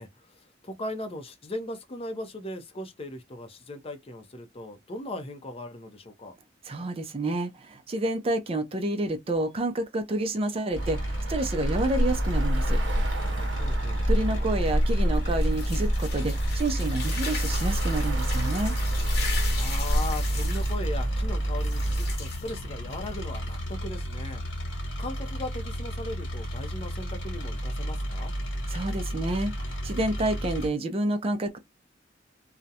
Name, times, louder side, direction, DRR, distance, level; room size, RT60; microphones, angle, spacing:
voice 1, 0.0-6.3 13.6-14.0 19.5-28.3, left 1 dB, 30° left, 0.5 m, -38 dB
voice 2, 6.7-12.8 14.1-18.8 28.7-31.6, right 2 dB, 30° right, 0.5 m, -29 dB
sound 1, 10.7-30.7, right 1 dB, 85° left, 1.1 m, -30 dB
Traffic noise roadway noise, 10.8-22.2, equal, 80° right, 0.7 m, -29 dB
sound 2, 14.0-23.2, left 4 dB, 60° left, 0.9 m, -38 dB
2.4 x 2.1 x 2.7 m
head